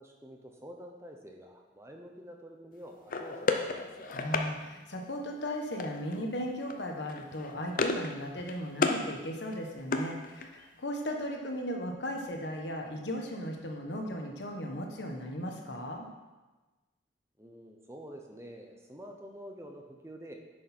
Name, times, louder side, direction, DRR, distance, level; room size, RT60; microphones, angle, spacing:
voice 1, 0.0-4.2 17.4-20.4, equal, 15° right, 2 dB, 0.8 m, -48 dB
sound 1, 3.1-4.5 5.8-6.2 6.5-6.7 7.1-8.1 8.4-9.0 9.4-10.7, left 3 dB, 45° left, 0.6 m, -32 dB
voice 2, 4.1-16.1, equal, 65° left, 2 dB, 1.3 m, -36 dB
9.8 x 6.4 x 4.4 m, 1.2 s
head